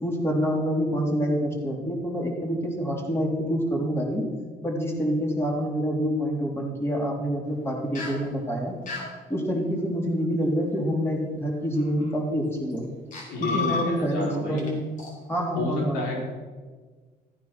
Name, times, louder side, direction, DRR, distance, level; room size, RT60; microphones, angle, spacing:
voice 1, 0.0-4.2 4.6-8.8 9.3-12.8 13.4-14.8 15.3-16.0, equal, 15° left, -1 dB, 3.6 m, -27 dB
sound 1, 7.9-8.2 8.9-9.1 10.8-11.0 11.8-12.1 12.8-12.9 13.1-14.3 14.6-14.7 15.0-15.1, left 4 dB, 50° left, 4.7 m, -31 dB
voice 2, 13.3-14.6 15.6-16.2, left 2 dB, 85° left, -2 dB, 4.6 m, -30 dB
15.0 x 9.5 x 6.1 m, 1.4 s
cardioid pair, 110°, 17 cm